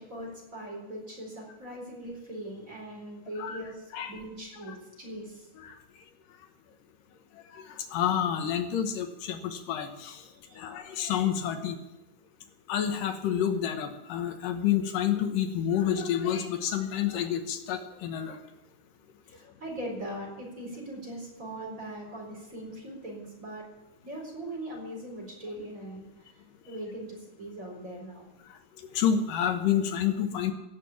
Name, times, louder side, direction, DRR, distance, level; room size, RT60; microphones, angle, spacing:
voice 1, 0.0-5.5 10.4-10.6 19.3-23.7 24.0-28.3, right 1 dB, 25° right, -1 dB, 4.5 m, -40 dB
voice 2, 7.5-10.2 10.6-11.8 12.7-18.4 28.9-30.5, left 9 dB, 80° left, 6 dB, 2.8 m, -29 dB
16.0 x 7.6 x 8.5 m, 0.97 s
omnidirectional pair, 3.9 m